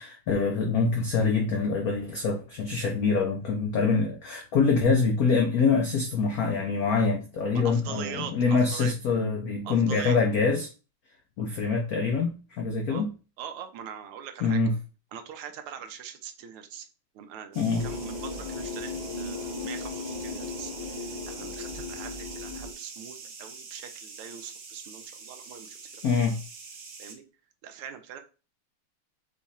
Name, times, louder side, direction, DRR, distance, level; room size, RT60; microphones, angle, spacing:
voice 1, 0.0-10.7 11.4-13.1 14.4-14.7 17.6-17.9 26.0-26.4, left 4 dB, 85° left, 0.8 m, -25 dB
voice 2, 7.5-8.9 9.6-10.2 12.9-13.0 13.4-14.6 15.1-16.9 17.1-26.3 27.0-27.2 27.6-28.2, right 8 dB, 90° right, 1.6 m, -42 dB
sound 1, 17.5-27.1, right 5 dB, 55° right, 1.2 m, -44 dB
sound 2, 17.7-22.7, left 3 dB, 70° left, 1.5 m, -36 dB
5.1 x 2.4 x 4.0 m
omnidirectional pair, 2.4 m